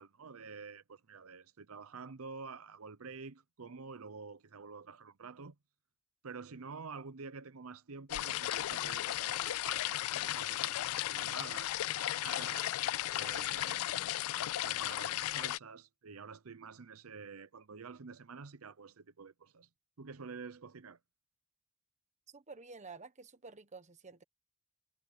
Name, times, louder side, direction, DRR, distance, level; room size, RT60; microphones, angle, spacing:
voice 1, 0.0-5.5 6.2-12.7 13.1-19.7 20.0-21.0, right 5 dB, 80° right, 0.7 m, -49 dB
sound 1, 8.1-15.6, left 14 dB, 85° left, 0.3 m, -35 dB
voice 2, 22.3-24.2, right 4 dB, 35° right, 1.3 m, -51 dB
head